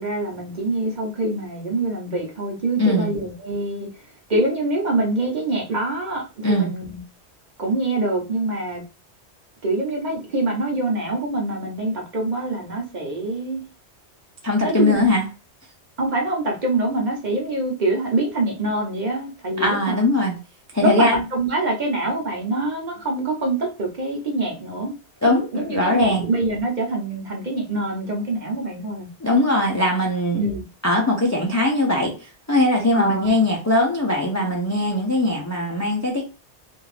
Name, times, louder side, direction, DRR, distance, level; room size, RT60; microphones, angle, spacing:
voice 1, 0.0-3.9 4.3-7.0 7.6-8.8 9.6-13.6 14.6-15.1 16.0-20.0 20.8-24.9 25.2-29.1 30.4-30.6 32.9-33.3, right 2 dB, 45° right, 0.8 m, -25 dB
voice 2, 2.8-3.1 6.4-6.7 14.4-15.2 19.6-20.4 20.7-21.2 25.2-26.3 29.2-30.4 30.8-36.2, left 1 dB, 25° left, 0.4 m, -20 dB
2.6 x 2.4 x 3.2 m
omnidirectional pair, 1.1 m